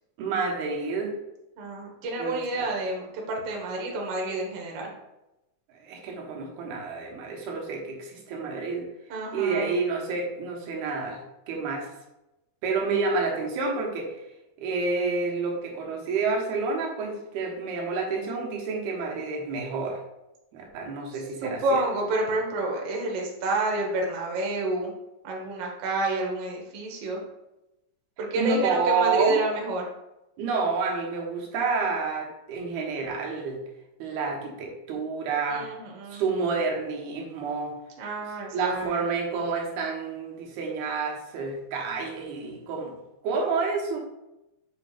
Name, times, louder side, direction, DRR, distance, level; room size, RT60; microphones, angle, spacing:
voice 1, 0.2-1.1 2.2-2.4 5.7-8.8 9.3-11.2 11.5-11.9 12.6-14.1 14.6-20.0 20.5-21.8 28.3-29.4 30.4-33.6 34.0-35.7 36.1-37.7 38.5-42.9 43.2-44.0, right 4 dB, 80° right, -1 dB, 3.1 m, -29 dB
voice 2, 1.6-4.9 9.1-9.7 21.4-24.9 25.2-27.2 28.2-29.9 35.5-36.2 38.0-39.0, right 2 dB, 60° right, -1 dB, 1.7 m, -29 dB
7.2 x 6.2 x 2.5 m, 0.92 s
omnidirectional pair, 4.4 m